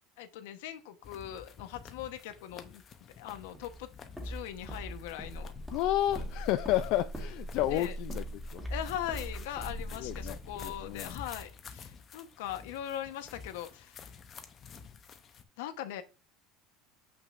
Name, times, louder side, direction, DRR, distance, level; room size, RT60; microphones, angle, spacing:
voice 1, 0.2-2.8 3.2-3.9 4.2-5.5 7.7-7.9 8.7-14.1 15.6-16.0, left 11 dB, 75° left, 1.0 m, -40 dB
sound 1, 1.0-15.4, left 6 dB, 25° left, 0.7 m, -50 dB
Walk footsteps, 3.5-11.4, equal, ahead, 1.3 m, -41 dB
voice 2, 5.7-8.2 8.5-8.6 10.0-11.2, left 13 dB, 45° left, 0.3 m, -31 dB
7.7 x 5.8 x 2.6 m
cardioid pair, 180°, 0 cm